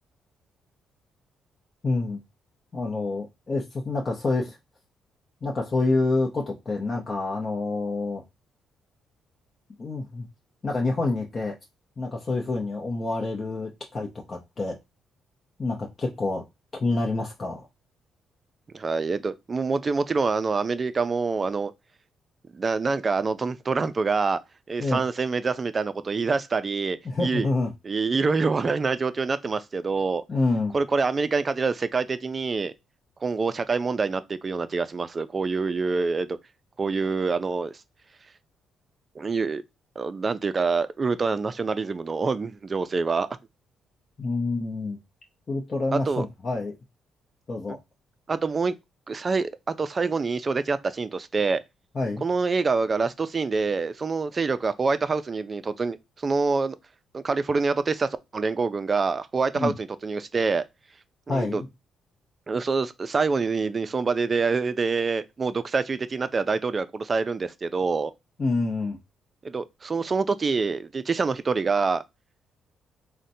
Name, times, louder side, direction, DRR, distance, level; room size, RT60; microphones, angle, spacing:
voice 1, 1.8-2.2 2.7-4.6 5.4-8.2 9.8-10.3 10.6-11.6 12.0-14.8 15.6-16.4 16.7-17.7 24.8-25.0 27.0-27.7 30.3-30.7 44.2-45.0 45.5-46.7 47.5-47.8 51.9-52.2 59.5-59.7 61.3-61.7 68.4-69.0, left 3 dB, 40° left, 0.7 m, -27 dB
voice 2, 18.7-21.7 22.5-24.4 24.7-27.5 27.8-30.2 30.7-32.7 33.2-36.4 36.8-37.8 39.2-39.6 40.0-43.3 45.9-46.3 47.7-47.8 48.3-48.8 49.1-51.6 52.2-56.0 56.2-56.8 57.1-60.7 61.3-61.6 62.5-68.1 69.4-72.0, right 4 dB, 35° right, 0.3 m, -26 dB
3.9 x 2.1 x 2.6 m
cardioid pair, 90°, 0 cm